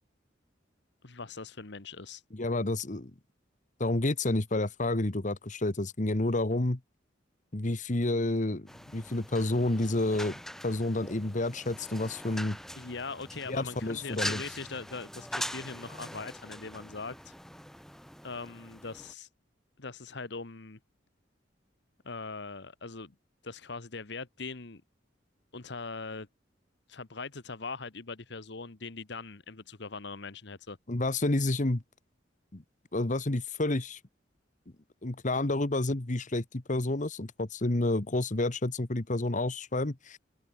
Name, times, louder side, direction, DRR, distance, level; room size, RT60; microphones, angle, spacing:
voice 1, 1.0-2.2 12.7-17.3 18.2-19.3 19.8-20.8 22.0-23.1 23.4-24.8 25.5-26.3 26.9-30.8, left 4 dB, 65° left, 1.3 m, -41 dB
voice 2, 2.3-3.1 3.8-6.8 7.5-10.4 10.6-12.6 13.5-14.4 30.9-31.8 32.5-32.6 32.9-34.0 35.0-40.2, left 2 dB, 40° left, 1.3 m, -29 dB
sound 1, 8.7-19.1, equal, ahead, 2.2 m, -42 dB
head